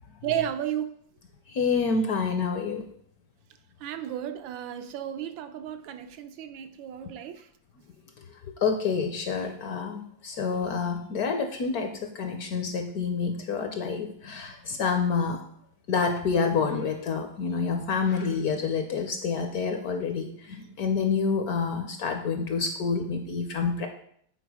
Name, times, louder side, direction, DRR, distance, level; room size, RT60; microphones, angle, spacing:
voice 1, 0.2-0.9 3.8-7.5, right 10 dB, 85° right, 1.4 m, -33 dB
voice 2, 1.5-2.8 8.6-15.4 15.9-23.9, left 5 dB, 65° left, 1.0 m, -28 dB
8.1 x 4.1 x 4.7 m
omnidirectional pair, 2.1 m